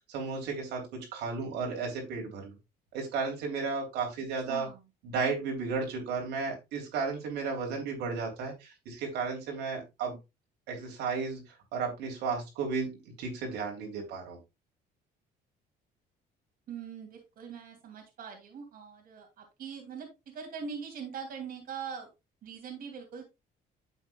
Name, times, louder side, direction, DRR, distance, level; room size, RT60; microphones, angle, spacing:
voice 1, 0.1-2.6 2.9-4.7 5.0-10.2 10.7-11.4 11.7-14.4, right 4 dB, 85° right, 1 dB, 3.1 m, -34 dB
voice 2, 4.5-4.8 16.7-20.1 20.3-22.1 22.4-23.2, right 6 dB, 60° right, 1 dB, 2.5 m, -42 dB
9.7 x 7.1 x 2.3 m, 0.24 s
cardioid pair, 110°, 17 cm